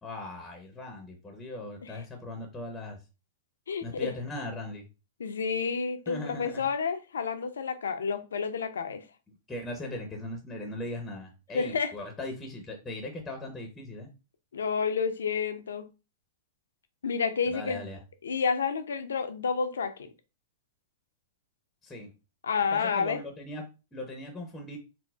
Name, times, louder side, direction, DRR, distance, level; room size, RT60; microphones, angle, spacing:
voice 1, 0.0-3.0 3.8-4.9 6.1-6.7 9.5-14.1 17.5-18.0 21.8-22.1 22.7-23.6 23.9-24.8, left 1 dB, 10° left, 0.7 m, -39 dB
voice 2, 3.7-4.1 5.2-9.1 11.5-11.9 14.5-15.9 17.0-17.8 18.2-19.9 22.4-23.2, left 5 dB, 85° left, 0.4 m, -30 dB
3.9 x 2.0 x 2.3 m
hypercardioid pair, 115°, 0 cm